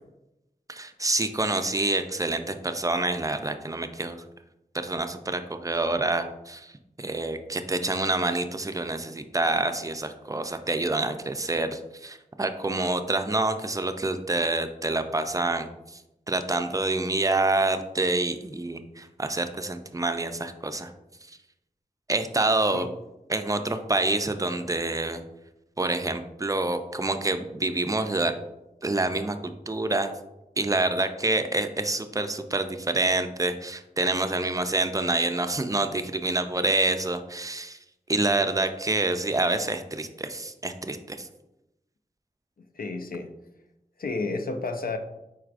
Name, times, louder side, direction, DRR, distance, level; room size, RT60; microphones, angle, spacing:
voice 1, 0.7-4.2 4.8-6.7 7.0-15.7 16.3-20.9 22.1-22.9 23.3-25.2 25.8-28.3 28.8-30.1 30.6-37.8 38.1-41.3, right 2 dB, 20° right, 8 dB, 0.4 m, -27 dB
voice 2, 42.7-43.3 44.0-45.0, left 3 dB, 70° left, 6 dB, 0.5 m, -31 dB
4.6 x 4.6 x 2.5 m, 0.92 s
wide cardioid pair, 55°, 16 cm